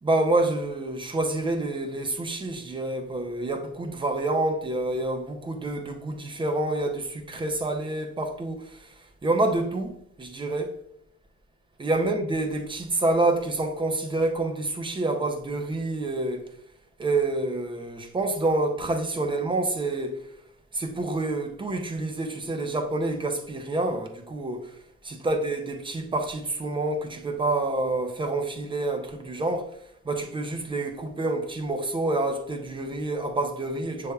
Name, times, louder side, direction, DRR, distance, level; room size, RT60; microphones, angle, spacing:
voice 1, 0.0-10.8 11.8-16.4 17.0-20.2 20.7-24.8 25.1-29.8 30.0-34.1, right 2 dB, 15° right, 0.5 m, -28 dB
6.5 x 3.4 x 2.2 m
cardioid pair, 165°, 29 cm